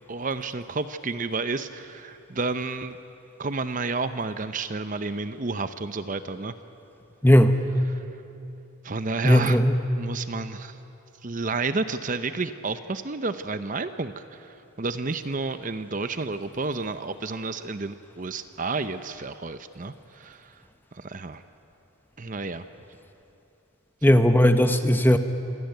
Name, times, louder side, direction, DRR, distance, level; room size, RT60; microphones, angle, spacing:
voice 1, 0.1-3.0 3.4-6.6 7.9-8.0 8.8-9.6 10.0-10.8 11.2-20.6 20.9-21.4 22.2-22.7, right 3 dB, 35° right, 11 dB, 0.7 m, -31 dB
voice 2, 7.2-7.6 9.2-9.7 24.0-25.2, equal, 10° left, 8 dB, 0.9 m, -17 dB
26.5 x 17.0 x 9.2 m, 2.8 s
head